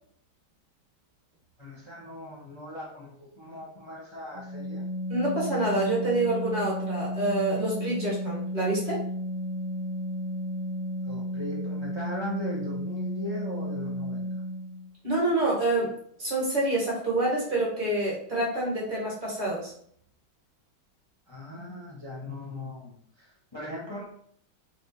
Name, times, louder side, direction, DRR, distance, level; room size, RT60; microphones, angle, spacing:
voice 1, 1.6-4.8 11.0-14.3 21.3-24.1, left 1 dB, 25° left, -5 dB, 0.6 m, -39 dB
Organ, 4.3-14.9, equal, 75° left, 1.7 m, -33 dB
voice 2, 5.1-9.0 15.0-15.9 16.2-19.7, right 2 dB, 25° right, -6 dB, 1.5 m, -27 dB
4.2 x 3.3 x 2.7 m, 0.63 s
omnidirectional pair, 2.2 m